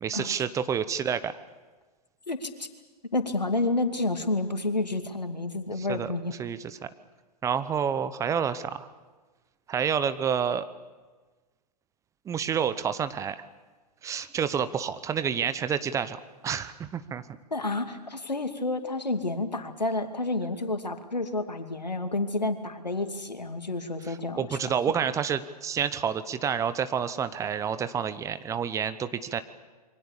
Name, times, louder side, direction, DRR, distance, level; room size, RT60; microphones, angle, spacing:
voice 1, 0.0-1.3 5.8-6.8 7.4-8.9 9.7-10.6 12.3-13.4 14.0-16.2 16.4-17.2 24.1-29.4, right 7 dB, 15° right, 13 dB, 0.8 m, -29 dB
voice 2, 2.3-2.7 3.1-6.3 17.5-24.6, left 2 dB, 85° left, 7 dB, 2.5 m, -30 dB
27.5 x 24.0 x 7.1 m, 1.3 s
figure-of-eight pair, 115°, 21 cm